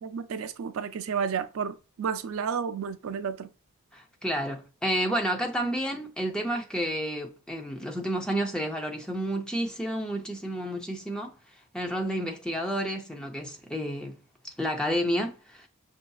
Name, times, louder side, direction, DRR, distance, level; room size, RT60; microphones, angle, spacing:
voice 1, 0.0-3.5, right 6 dB, 65° right, 0.4 m, -31 dB
voice 2, 3.9-11.3 11.7-14.2 14.4-15.7, equal, 5° left, 0.6 m, -30 dB
5.8 x 2.7 x 2.3 m
head